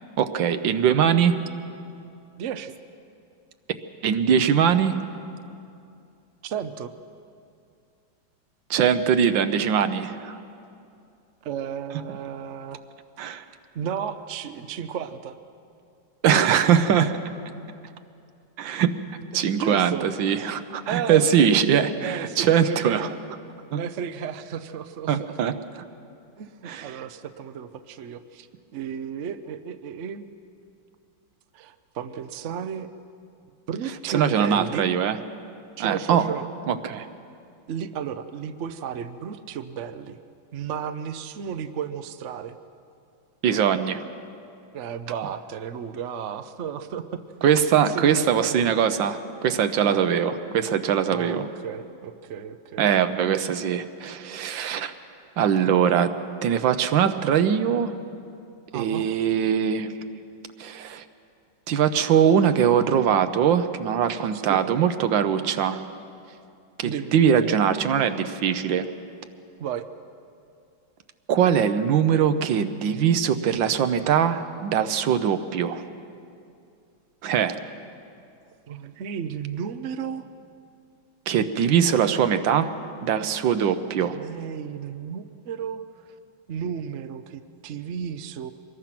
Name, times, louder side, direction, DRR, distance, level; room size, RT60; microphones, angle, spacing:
voice 1, 0.2-1.4 4.0-5.0 8.7-10.4 13.2-13.4 16.2-17.2 18.6-19.0 19.3-23.1 23.7-23.8 25.1-25.8 26.6-27.0 34.1-35.2 35.8-36.3 36.7-37.1 43.4-44.0 47.4-51.5 52.8-54.9 55.4-56.1 56.4-57.9 58.7-59.9 60.6-61.0 61.7-65.8 66.8-68.9 71.3-75.8 77.2-77.6 81.3-82.7 83.0-84.2, right 8 dB, 75° right, 10 dB, 1.6 m, -22 dB
voice 2, 2.4-2.7 6.4-6.9 11.4-12.8 13.7-15.4 19.5-20.1 20.9-21.5 22.0-23.2 23.7-25.3 26.4-28.5 28.7-30.3 31.5-32.9 33.7-34.9 35.8-36.5 37.7-40.2 40.5-42.6 44.7-47.2 47.7-48.9 49.8-50.0 51.1-53.2 58.7-59.1 64.3-64.6 66.8-67.2 69.6-69.8 78.7-80.3 84.0-86.1 86.5-88.5, right 8 dB, 60° right, 10 dB, 0.8 m, -33 dB
25.0 x 21.0 x 6.0 m, 2.5 s
omnidirectional pair, 2.1 m